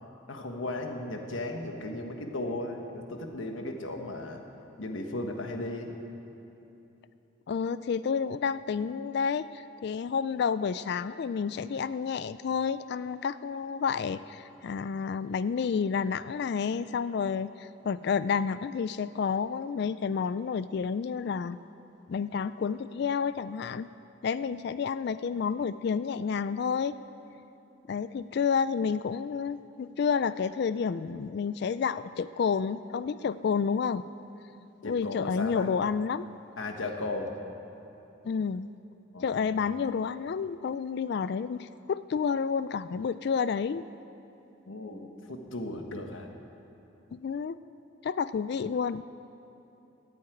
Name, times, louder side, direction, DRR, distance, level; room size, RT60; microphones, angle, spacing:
voice 1, 0.3-4.4 4.8-5.9 34.8-35.7 36.6-37.4 39.1-39.5 44.7-46.3, left 2 dB, 75° left, 4 dB, 1.4 m, -36 dB
voice 2, 7.5-21.6 22.1-23.9 24.2-27.0 27.9-34.1 34.8-36.3 38.2-38.7 39.2-43.8 47.1-47.6 48.0-49.0, left 6 dB, 55° left, 15 dB, 0.3 m, -30 dB
14.5 x 8.5 x 9.2 m, 2.9 s
head